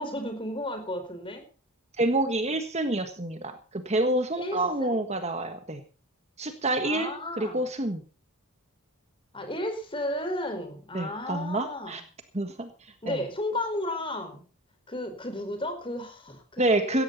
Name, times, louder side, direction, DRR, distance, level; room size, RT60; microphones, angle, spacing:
voice 1, 0.0-1.4 4.4-5.0 6.8-7.6 9.3-12.0 13.0-14.4 14.9-17.0, left 1 dB, 25° left, 7 dB, 4.7 m, -33 dB
voice 2, 2.0-5.8 6.4-7.1 7.4-8.0 10.9-12.0 12.3-13.2 16.6-17.0, right 1 dB, 30° right, 8 dB, 1.5 m, -28 dB
17.5 x 14.0 x 4.1 m, 0.35 s
head